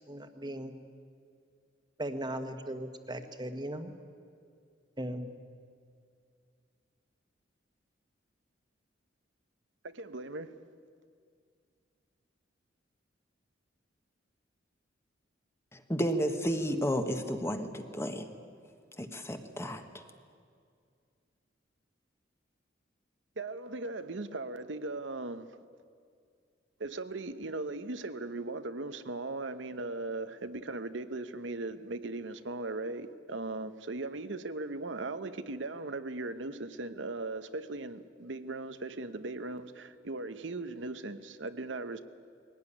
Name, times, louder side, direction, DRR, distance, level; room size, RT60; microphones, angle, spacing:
voice 1, 0.1-0.7 2.0-3.9 5.0-5.3, right 1 dB, 25° right, 1.4 m, -38 dB
voice 2, 9.8-10.6 23.4-25.6 26.8-42.0, right 2 dB, 75° right, 0.9 m, -38 dB
voice 3, 15.9-18.3 19.0-20.0, equal, 15° left, 1.3 m, -32 dB
21.0 x 18.0 x 9.9 m
head